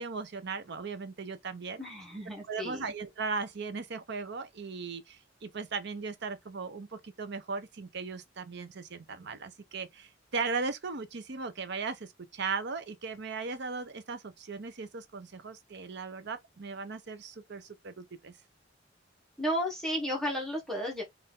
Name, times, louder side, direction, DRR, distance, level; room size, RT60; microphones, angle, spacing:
voice 1, 0.0-1.8 2.5-18.3, right 4 dB, 65° right, 0.7 m, -37 dB
voice 2, 1.8-2.9 19.4-21.0, equal, ahead, 1.3 m, -33 dB
4.2 x 2.6 x 3.7 m
head